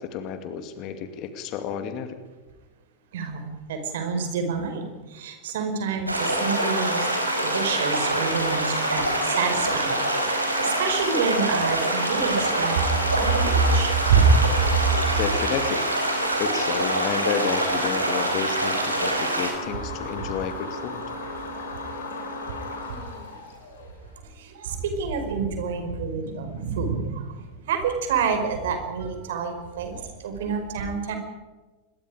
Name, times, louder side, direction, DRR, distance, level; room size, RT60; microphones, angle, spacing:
voice 1, 0.0-2.2 15.2-15.9 16.4-21.0, left 7 dB, 40° left, 9 dB, 2.5 m, -31 dB
voice 2, 3.1-7.1 7.4-9.9 10.6-12.8 13.1-14.2 24.5-27.4 27.7-31.2, right 5 dB, 55° right, 6 dB, 5.1 m, -27 dB
sound 1, 6.1-24.1, left 2 dB, 65° left, 6.3 m, -35 dB
sound 2, 6.1-19.5, right 1 dB, 85° right, 5.1 m, -25 dB
26.5 x 22.5 x 5.1 m, 1.2 s
figure-of-eight pair, 90°, 0 cm